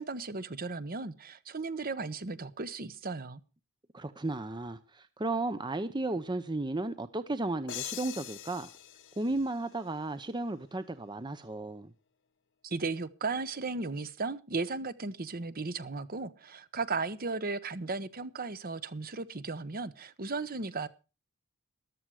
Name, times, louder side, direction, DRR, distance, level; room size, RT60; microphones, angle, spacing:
voice 1, 0.0-3.4 12.6-20.9, right 3 dB, 45° right, 1.0 m, -35 dB
voice 2, 3.9-8.7 9.2-11.9, right 2 dB, 20° right, 0.7 m, -34 dB
sound 1, 7.7-10.4, left 12 dB, 60° left, 1.0 m, -43 dB
14.0 x 12.5 x 4.8 m
head